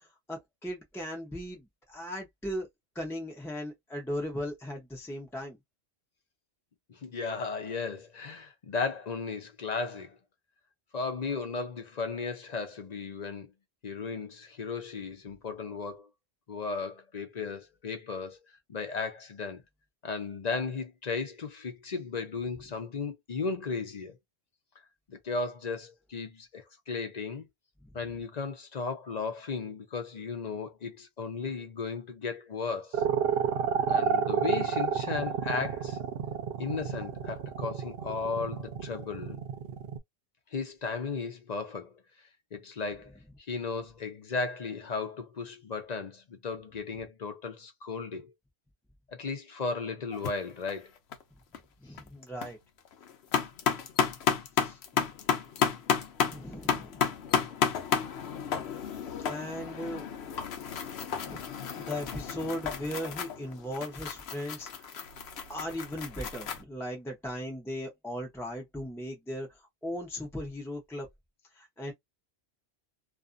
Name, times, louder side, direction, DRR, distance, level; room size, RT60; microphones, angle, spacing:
voice 1, 0.3-2.7 2.9-5.6 51.8-52.6 54.6-55.0 56.3-57.0 59.2-60.0 61.3-61.5 61.8-64.9 65.5-69.5 69.8-71.1 71.6-71.9, equal, 5° left, 0.6 m, -37 dB
voice 2, 6.9-10.2 10.9-13.5 13.8-16.1 16.5-18.4 18.7-19.6 20.0-24.2 25.1-27.5 27.9-33.0 33.9-36.0 36.6-39.4 40.5-42.0 42.5-43.2 43.5-48.3 49.1-50.9, left 4 dB, 45° left, 0.6 m, -35 dB
sound 1, 32.9-40.0, right 7 dB, 65° right, 0.8 m, -29 dB
sound 2, 50.1-50.3 50.7-51.2 51.5-51.6 52.0-52.5 52.8-66.6, left 7 dB, 75° left, 0.9 m, -32 dB
2.5 x 2.5 x 2.5 m
omnidirectional pair, 1.1 m